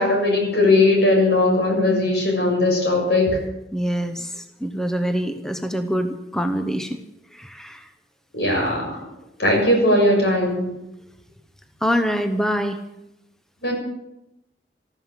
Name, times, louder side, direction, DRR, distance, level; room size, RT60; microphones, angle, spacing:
voice 1, 0.0-3.4 8.3-9.0 9.4-10.7 13.6-13.7, left 2 dB, 70° left, 1 dB, 6.8 m, -19 dB
voice 2, 3.7-7.0 7.3-7.9 11.8-12.8, equal, 5° left, 7 dB, 0.9 m, -25 dB
13.5 x 13.5 x 7.5 m, 0.89 s
head